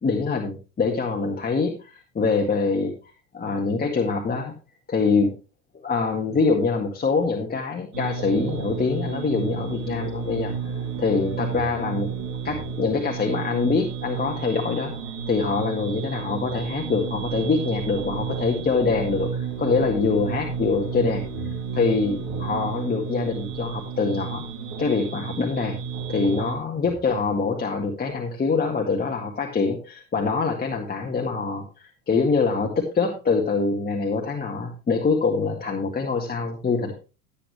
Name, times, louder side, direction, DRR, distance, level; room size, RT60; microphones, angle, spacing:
voice 1, 0.0-2.9 3.3-4.5 4.9-5.3 5.7-10.7 11.0-14.9 15.3-21.2 21.7-24.4 24.8-25.8 26.1-36.9, left 4 dB, 20° left, 1 dB, 1.8 m, -24 dB
sound 1, 7.9-26.5, right 6 dB, 35° right, 2.9 m, -31 dB
12.5 x 8.5 x 3.2 m, 0.31 s
hypercardioid pair, 105°, 49 cm